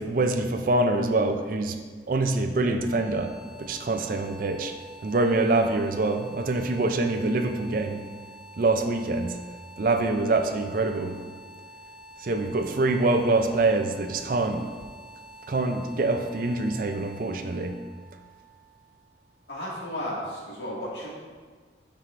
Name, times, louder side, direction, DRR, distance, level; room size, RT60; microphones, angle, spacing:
voice 1, 0.0-1.8 2.1-4.7 5.0-8.1 8.6-9.4 9.8-11.2 12.2-14.7 15.5-17.8, right 2 dB, 50° right, 6 dB, 0.4 m, -25 dB
sound 1, 2.8-19.7, right 1 dB, 20° left, 0.7 m, -48 dB
voice 2, 19.5-21.1, left 1 dB, 70° left, -6 dB, 1.9 m, -33 dB
9.3 x 4.6 x 2.5 m, 1.5 s
head